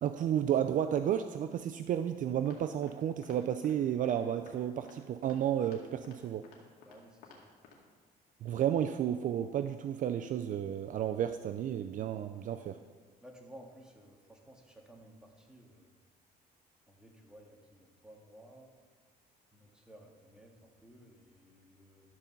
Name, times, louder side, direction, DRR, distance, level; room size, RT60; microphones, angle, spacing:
voice 1, 0.0-6.4 8.4-12.8, right 10 dB, 50° right, 9 dB, 0.4 m, -32 dB
sound 1, 2.5-2.9 3.2-3.4 3.6-3.7 4.0-4.2 4.5-4.6 4.8-4.9 5.2-5.4 5.6-5.8 6.0-6.2 6.4-7.0 7.2-7.4 7.6-7.7, left 6 dB, 85° left, 2.1 m, -55 dB
voice 2, 6.8-7.5 13.2-15.9 16.9-18.7 19.5-22.2, right 1 dB, 5° right, 0 dB, 1.8 m, -56 dB
12.5 x 5.3 x 7.0 m, 1.5 s
cardioid pair, 110°, 17 cm